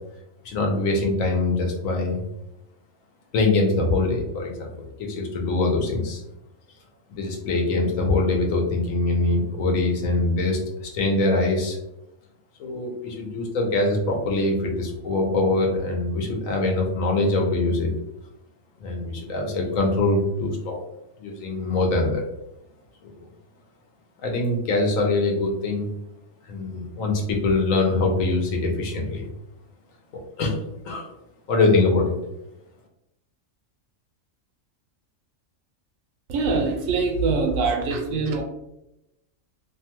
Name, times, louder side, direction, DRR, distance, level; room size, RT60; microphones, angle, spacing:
voice 1, 0.4-2.2 3.3-6.2 7.1-10.6 10.9-11.8 12.6-17.9 18.8-20.8 21.2-22.2 24.2-25.9 26.5-29.3 30.4-31.1 31.5-32.1, left 2 dB, 80° left, 1 dB, 1.1 m, -23 dB
voice 2, 36.3-38.4, right 4 dB, 85° right, 3 dB, 1.0 m, -23 dB
2.7 x 2.3 x 2.8 m, 0.87 s
omnidirectional pair, 1.4 m